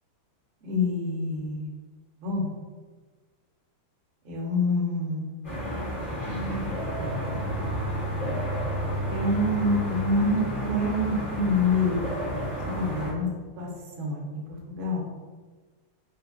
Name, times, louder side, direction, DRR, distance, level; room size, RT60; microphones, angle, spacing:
voice 1, 0.6-1.7 2.2-2.5 4.2-5.3 6.4-6.6 7.0-7.3 9.1-12.1 12.6-13.3 13.6-13.7 14.0-15.0, left 2 dB, 60° right, -3 dB, 0.7 m, -27 dB
sound 1, 5.4-13.1, equal, 30° left, 1.4 m, -31 dB
4.0 x 2.7 x 2.6 m, 1.4 s
omnidirectional pair, 2.3 m